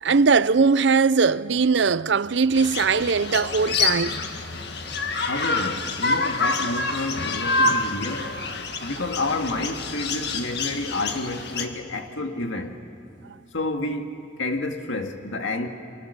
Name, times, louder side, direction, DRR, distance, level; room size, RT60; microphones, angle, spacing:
voice 1, 0.0-4.2, right 5 dB, 65° right, 0.6 m, -20 dB
sound 1, 2.5-11.7, left 3 dB, 55° left, 1.8 m, -27 dB
voice 2, 5.3-8.3 8.8-12.8 13.5-15.7, left 2 dB, 85° left, 2.0 m, -29 dB
30.0 x 24.5 x 6.7 m
head